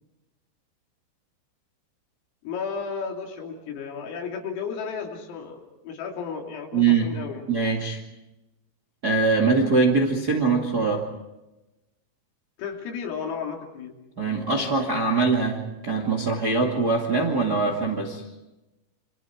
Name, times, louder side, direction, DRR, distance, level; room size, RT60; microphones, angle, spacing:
voice 1, 2.5-7.4 12.6-13.9, left 6 dB, 85° left, 1 dB, 5.8 m, -33 dB
voice 2, 6.7-7.1 7.5-8.0 9.0-11.0 14.2-18.2, right 4 dB, 35° right, 1 dB, 1.6 m, -22 dB
29.5 x 26.0 x 4.6 m, 0.99 s
omnidirectional pair, 5.8 m